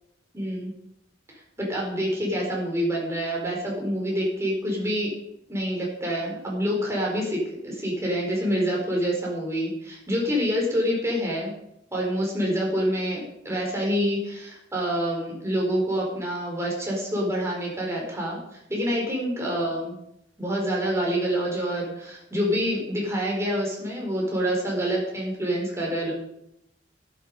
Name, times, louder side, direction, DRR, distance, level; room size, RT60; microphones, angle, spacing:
voice 1, 0.3-0.7 1.6-5.1 5.5-11.5 11.9-20.0 20.4-26.1, equal, 15° right, -2 dB, 4.4 m, -27 dB
12.0 x 11.0 x 5.3 m, 0.81 s
head